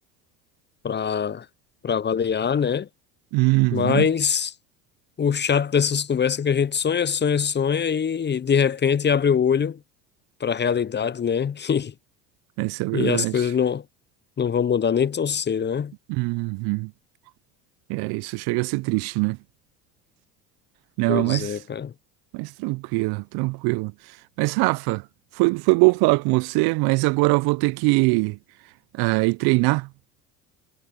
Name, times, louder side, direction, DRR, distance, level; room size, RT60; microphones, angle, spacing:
voice 1, 0.8-1.4 1.8-2.9 3.7-4.5 5.2-9.8 10.4-11.9 12.9-13.8 14.4-15.9 21.1-21.9, left 7 dB, 20° left, 0.8 m, -23 dB
voice 2, 3.3-4.1 12.6-13.3 16.1-16.9 17.9-19.4 21.0-21.5 22.3-23.9 24.4-25.0 25.4-28.4 29.0-29.9, right 26 dB, 55° right, 0.7 m, -22 dB
hypercardioid pair, 75°, 47 cm